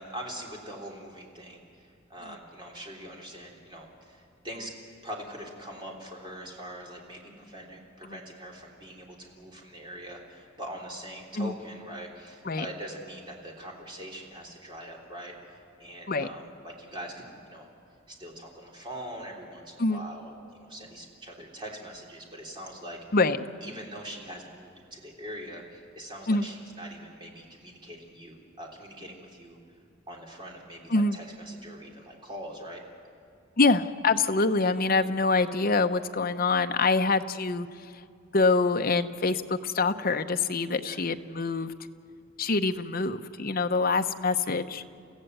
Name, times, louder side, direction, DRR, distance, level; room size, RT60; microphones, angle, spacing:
voice 1, 0.0-4.8 5.0-17.7 18.1-23.0 23.6-29.6 30.1-32.8 40.8-41.0, equal, 25° right, -1 dB, 3.3 m, -43 dB
voice 2, 33.6-37.7 38.3-41.7 42.4-44.8, left 3 dB, 45° left, 8 dB, 0.8 m, -25 dB
29.5 x 15.0 x 7.9 m, 2.4 s
head